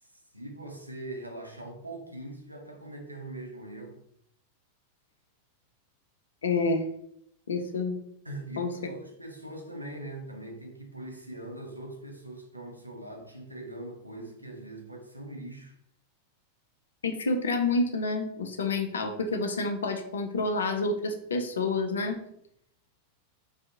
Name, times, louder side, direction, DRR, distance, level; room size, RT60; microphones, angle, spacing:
voice 1, 0.0-4.0 8.2-15.8, right 1 dB, 85° right, 0.4 m, -42 dB
voice 2, 6.4-6.8 7.5-8.0 8.6-8.7 17.0-22.2, left 3 dB, 70° left, 0.4 m, -28 dB
2.5 x 2.4 x 2.6 m
figure-of-eight pair, 90°, 0 cm